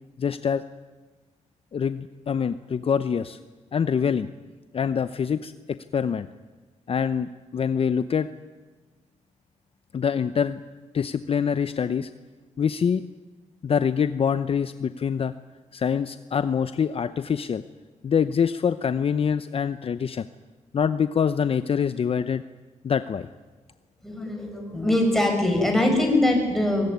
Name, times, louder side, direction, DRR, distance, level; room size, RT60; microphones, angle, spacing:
voice 1, 0.2-0.6 1.7-3.4 3.7-4.3 4.7-5.5 5.9-6.3 6.9-8.3 9.9-10.6 10.9-12.1 12.6-13.0 13.6-15.3 15.7-17.6 18.0-20.3 20.7-22.4 22.8-23.3, left 7 dB, 50° left, 12 dB, 0.8 m, -25 dB
voice 2, 24.0-26.9, left 1 dB, ahead, 2 dB, 7.2 m, -22 dB
23.5 x 21.0 x 9.4 m, 1.3 s
cardioid pair, 105°, 13 cm